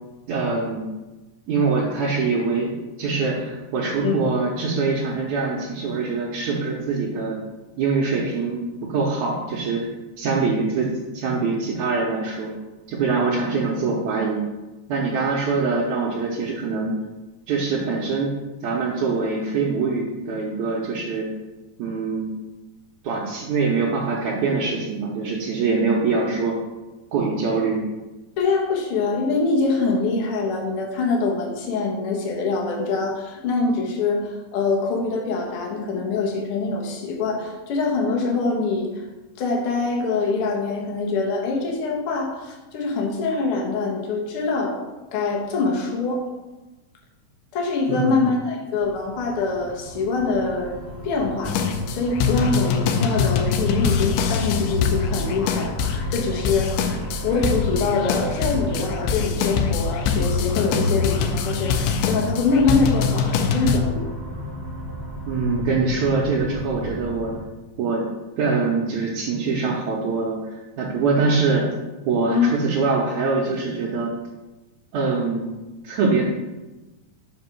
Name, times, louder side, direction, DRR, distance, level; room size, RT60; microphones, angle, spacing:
voice 1, 0.3-0.9 1.5-7.4 7.8-8.6 8.9-9.9 10.2-12.5 12.9-14.4 14.9-17.0 17.5-18.3 18.6-21.3 21.8-22.3 23.0-26.6 27.1-27.8 47.9-48.3 65.3-67.3 67.8-68.0 68.4-71.7 72.1-74.1 74.9-75.5 75.8-76.2, right 4 dB, 70° right, -4 dB, 2.2 m, -23 dB
voice 2, 28.4-39.0 39.4-44.8 45.1-46.3 47.5-50.8 51.0-56.8 57.2-64.1 72.3-72.5, left 3 dB, 55° left, -1 dB, 1.6 m, -24 dB
sound 1, 48.8-67.4, equal, 5° left, 1.2 m, -34 dB
sound 2, 51.4-63.8, left 6 dB, 80° left, 2.2 m, -24 dB
5.3 x 5.3 x 5.9 m, 1.1 s
omnidirectional pair, 3.8 m